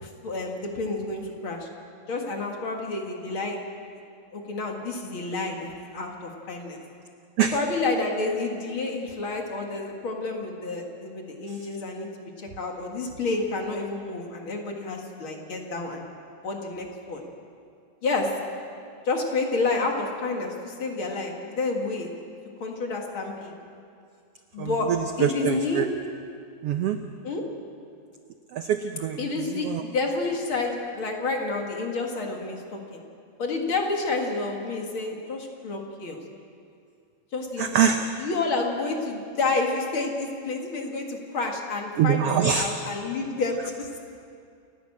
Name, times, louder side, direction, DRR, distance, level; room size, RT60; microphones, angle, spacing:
voice 1, 0.0-1.7 2.1-3.6 4.3-6.8 7.5-16.1 16.4-17.2 18.0-18.3 19.1-22.1 22.6-23.5 24.5-24.9 25.2-25.9 27.2-27.4 29.2-33.0 33.4-36.2 37.3-44.0, left 3 dB, 45° left, 1 dB, 2.3 m, -29 dB
voice 2, 25.2-25.9 26.6-27.0 28.5-29.2 29.5-29.8 37.6-38.0 42.0-42.7, right 8 dB, 85° right, 7 dB, 1.3 m, -23 dB
29.0 x 11.5 x 8.6 m, 2.4 s
omnidirectional pair, 3.7 m